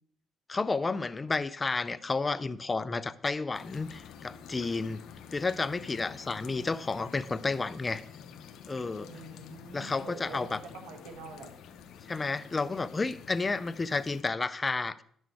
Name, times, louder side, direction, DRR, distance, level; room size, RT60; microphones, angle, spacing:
voice 1, 0.5-5.0 5.3-8.0 8.7-9.1 9.7-10.6 12.1-15.0, left 3 dB, 25° left, 0.5 m, -31 dB
sound 1, 3.5-14.2, left 7 dB, 75° left, 0.8 m, -49 dB
voice 2, 9.1-11.5 12.6-12.9, right 3 dB, 85° right, 1.6 m, -46 dB
10.5 x 6.3 x 4.7 m
cardioid pair, 90°, 0 cm